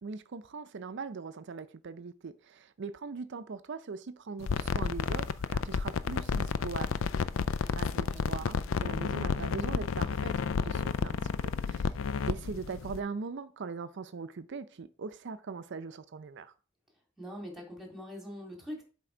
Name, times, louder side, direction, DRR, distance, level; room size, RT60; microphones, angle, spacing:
voice 1, 0.0-7.0 7.7-11.9 12.3-16.5, right 4 dB, 60° right, 0.5 m, -41 dB
sound 1, 4.4-13.0, left 6 dB, 70° left, 0.4 m, -31 dB
voice 2, 7.6-8.3 17.2-18.8, equal, ahead, 2.2 m, -44 dB
7.7 x 3.5 x 5.0 m
head